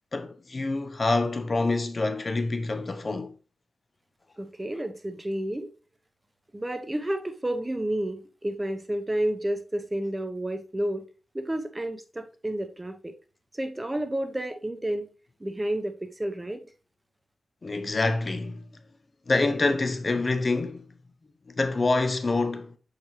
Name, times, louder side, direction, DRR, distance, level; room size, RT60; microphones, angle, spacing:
voice 1, 0.1-3.3 17.6-18.7 19.3-20.9 21.5-22.8, left 3 dB, 45° left, 0.8 m, -26 dB
voice 2, 4.4-5.7 6.5-11.1 11.3-13.1 13.5-15.1 15.4-16.6, right 1 dB, 20° right, 0.9 m, -30 dB
7.1 x 4.8 x 3.1 m
cardioid pair, 60°, 0 cm